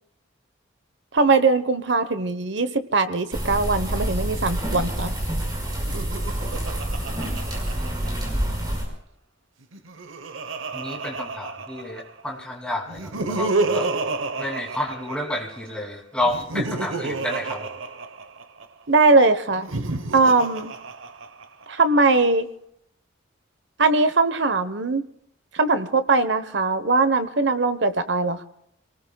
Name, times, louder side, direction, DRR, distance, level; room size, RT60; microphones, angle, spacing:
voice 1, 1.1-5.1 18.9-19.7 20.1-20.7 21.7-22.5 23.8-25.0 25.5-28.4, right 3 dB, 65° right, 10 dB, 1.1 m, -20 dB
sound 1, 3.3-8.9, right 1 dB, 20° right, 5.4 m, -27 dB
Laughter, 5.8-8.5 9.6-12.2 12.9-15.6 16.2-18.6 19.5-21.6, right 3 dB, 90° right, 1.0 m, -30 dB
voice 2, 7.7-8.6 10.7-13.9 14.4-17.7, left 1 dB, 5° left, -1 dB, 2.7 m, -31 dB
29.0 x 19.0 x 2.3 m, 0.73 s
head